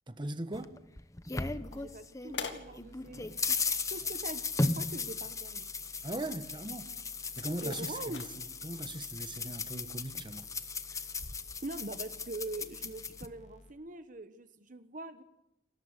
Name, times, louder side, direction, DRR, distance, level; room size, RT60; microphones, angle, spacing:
voice 1, 0.1-0.8 6.0-6.9 7.4-10.4, right 1 dB, 30° right, 1.3 m, -39 dB
sound 1, 0.5-2.4 2.8-13.3, left 3 dB, 20° left, 1.0 m, -37 dB
sound 2, 1.6-9.1, left 5 dB, 85° left, 2.4 m, -48 dB
voice 2, 1.7-3.6 3.9-5.7 7.6-8.2 11.6-15.2, right 2 dB, 50° right, 1.1 m, -43 dB
sound 3, 2.3-13.7, left 1 dB, 45° left, 2.2 m, -57 dB
29.0 x 13.5 x 8.2 m
head